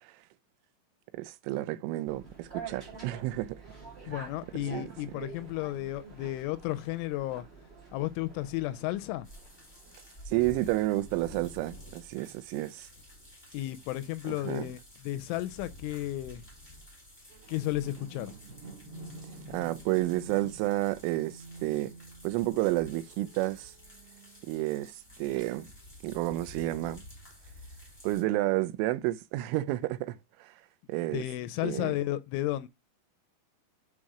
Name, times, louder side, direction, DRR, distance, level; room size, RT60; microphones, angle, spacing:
voice 1, 1.1-3.6 4.0-4.2 4.7-4.9 10.3-12.9 14.3-14.7 19.5-21.9 22.2-23.7 24.5-25.7 26.0-27.0 28.0-30.5 30.9-31.2 31.6-31.9, right 17 dB, 90° right, 3.2 m, -31 dB
sound 1, 2.0-10.4, right 4 dB, 30° right, 1.1 m, -47 dB
voice 2, 4.1-7.4 7.9-9.3 13.5-14.8 15.0-16.4 17.5-18.3 31.1-32.7, left 15 dB, 85° left, 2.9 m, -33 dB
sound 2, 9.2-28.2, left 1 dB, 10° left, 1.3 m, -51 dB
sound 3, 17.3-24.7 25.3-25.4, right 2 dB, 55° right, 3.7 m, -49 dB
7.7 x 4.1 x 4.8 m
omnidirectional pair, 5.6 m